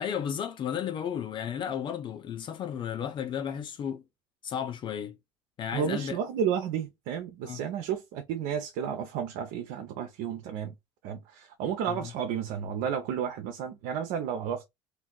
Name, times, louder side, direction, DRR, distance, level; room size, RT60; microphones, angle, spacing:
voice 1, 0.0-4.0 4.4-5.2 5.6-6.2 7.4-7.6 11.9-12.1, left 8 dB, 40° left, 0.5 m, -33 dB
voice 2, 5.7-10.7 11.0-14.6, right 8 dB, 75° right, 0.6 m, -32 dB
2.5 x 2.3 x 3.7 m
supercardioid pair, 110°, 12 cm